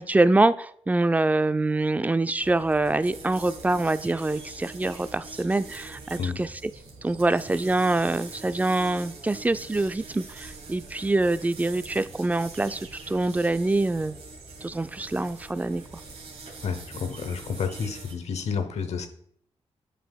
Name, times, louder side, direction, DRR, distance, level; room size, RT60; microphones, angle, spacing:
voice 1, 0.0-6.5 7.0-14.1 14.6-15.8, right 2 dB, 15° right, 13 dB, 0.3 m, -25 dB
sound 1, 2.4-18.1, right 3 dB, 75° right, 1.8 m, -44 dB
voice 2, 16.6-19.1, left 6 dB, 80° left, 8 dB, 0.9 m, -30 dB
8.4 x 5.5 x 2.3 m, 0.64 s
cardioid pair, 80°, 11 cm